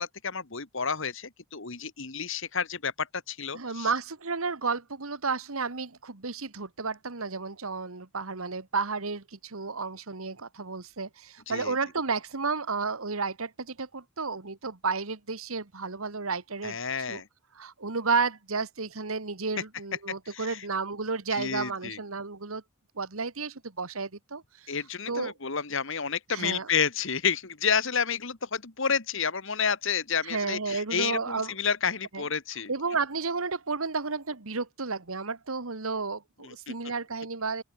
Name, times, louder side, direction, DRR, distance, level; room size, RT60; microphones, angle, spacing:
voice 1, 0.0-3.9 11.5-11.7 16.6-17.3 20.3-20.7 21.3-22.0 24.7-32.7 36.4-36.7, left 6 dB, 60° left, 2.0 m, -30 dB
voice 2, 3.5-16.8 17.1-17.2 17.6-22.6 23.0-24.7 25.1-25.3 26.3-26.7 30.2-31.5 32.1-32.2 32.7-37.6, right 4 dB, 80° right, 1.8 m, -32 dB
open air
head